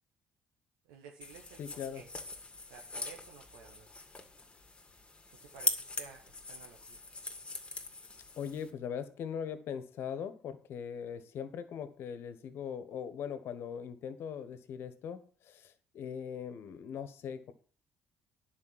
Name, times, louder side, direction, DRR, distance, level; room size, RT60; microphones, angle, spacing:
voice 1, 0.9-1.6 1.9-2.1 2.6-3.9 5.3-7.0, right 6 dB, 85° right, 2 dB, 1.3 m, -53 dB
sound 1, 1.2-8.7, left 3 dB, 25° left, 2.1 m, -41 dB
voice 2, 1.6-2.0 8.4-17.5, left 7 dB, 65° left, 12 dB, 1.3 m, -40 dB
10.0 x 5.2 x 7.4 m, 0.42 s
supercardioid pair, 65°, 4 cm